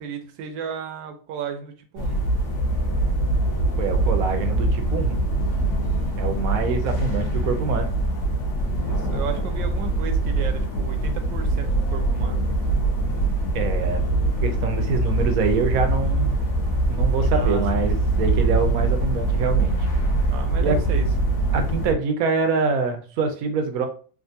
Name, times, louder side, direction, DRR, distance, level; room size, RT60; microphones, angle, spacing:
voice 1, 0.0-2.3 8.6-12.4 17.2-18.1 20.3-21.1, right 6 dB, 85° right, 6 dB, 1.3 m, -34 dB
sound 1, 2.0-21.9, right 2 dB, 55° left, 1.1 m, -23 dB
voice 2, 3.8-5.2 6.2-7.9 13.5-14.0 14.4-16.3 16.9-19.9 20.6-20.8 21.5-23.9, right 5 dB, 70° right, 6 dB, 0.8 m, -25 dB
3.4 x 2.5 x 2.7 m, 0.40 s
omnidirectional pair, 2.0 m